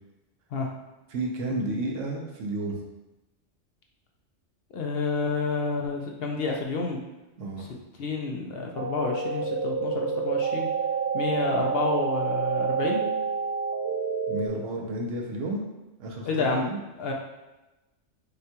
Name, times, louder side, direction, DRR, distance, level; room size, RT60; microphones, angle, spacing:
voice 1, 1.1-2.8 7.4-7.7 14.3-15.6 16.0-16.8, right 2 dB, 85° right, 1 dB, 1.1 m, -31 dB
voice 2, 4.7-7.0 7.6-7.7 8.0-10.7 11.1-13.0 16.3-17.1, left 4 dB, 60° left, 1 dB, 0.7 m, -29 dB
sound 1, 8.8-14.5, right 5 dB, 60° right, 0.9 m, -28 dB
6.5 x 2.3 x 2.8 m, 1.0 s
omnidirectional pair, 1.2 m